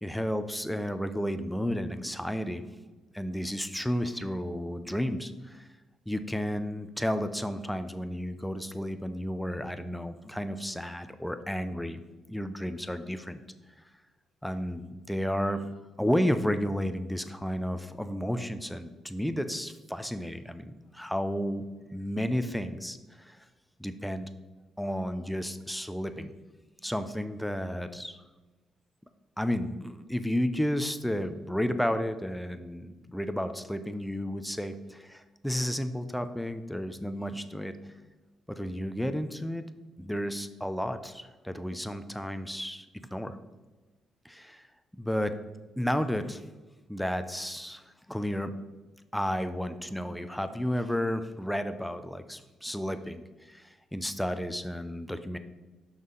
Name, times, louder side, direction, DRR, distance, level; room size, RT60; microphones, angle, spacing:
voice 1, 0.0-2.6 3.1-5.7 6.1-12.0 12.3-13.4 14.4-15.7 16.0-21.6 21.9-23.4 23.8-24.3 24.8-26.3 26.8-28.2 29.4-37.7 38.5-39.6 40.0-42.9 43.1-43.4 44.2-44.7 44.9-45.4 45.8-46.4 46.9-48.5 49.1-55.4, equal, 5° left, 10 dB, 0.5 m, -32 dB
6.2 x 5.5 x 3.9 m, 1.2 s
cardioid pair, 90°, 0 cm